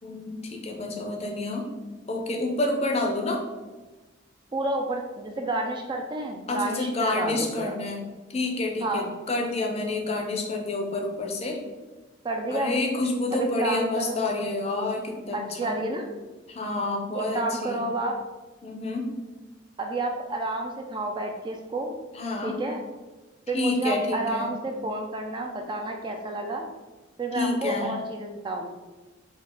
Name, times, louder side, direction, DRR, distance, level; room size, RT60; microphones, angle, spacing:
voice 1, 0.0-1.7 2.1-3.5 6.5-11.6 12.5-15.8 16.5-17.8 18.6-19.1 22.1-22.6 23.5-24.5 27.3-28.0, left 2 dB, 35° left, 2 dB, 0.5 m, -29 dB
voice 2, 4.5-7.7 8.8-9.1 12.2-12.7 13.3-14.2 15.3-16.0 17.2-18.2 19.8-21.9 22.4-22.8 23.5-26.7 27.2-28.7, right 2 dB, 25° right, 3 dB, 0.3 m, -30 dB
4.4 x 2.4 x 3.6 m, 1.2 s
head